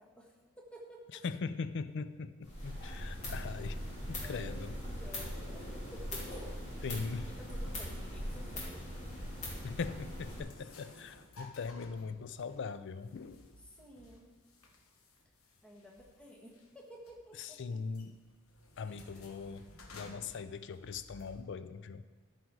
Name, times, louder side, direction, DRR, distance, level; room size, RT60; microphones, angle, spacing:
voice 1, 0.0-1.2 4.2-6.8 7.3-8.8 13.7-14.3 15.6-17.8 18.8-19.2, equal, 5° left, -2 dB, 1.3 m, -53 dB
voice 2, 1.2-3.8 4.1-4.7 6.8-7.3 9.6-13.5 17.4-18.2 18.8-19.6 19.9-22.0, left 5 dB, 60° left, 13 dB, 0.4 m, -40 dB
sound 1, 2.4-10.4, equal, 35° left, 2.9 m, -41 dB
sound 2, 10.2-21.4, left 2 dB, 85° left, 1.1 m, -57 dB
13.5 x 5.2 x 4.7 m, 1.3 s
head